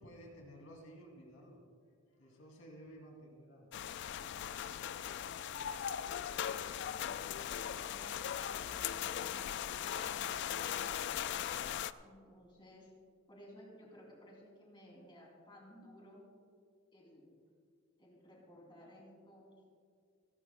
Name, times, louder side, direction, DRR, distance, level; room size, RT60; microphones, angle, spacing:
voice 1, 0.0-1.6 2.1-3.7 4.7-5.1, equal, 80° left, 0 dB, 2.5 m, -55 dB
sound 1, 3.7-11.9, left 9 dB, 55° left, 0.3 m, -39 dB
voice 2, 6.8-11.2 12.0-12.9 13.3-16.3 16.9-17.3 18.0-19.6, equal, 25° left, -2 dB, 2.8 m, -57 dB
28.5 x 11.0 x 2.2 m, 2.1 s
head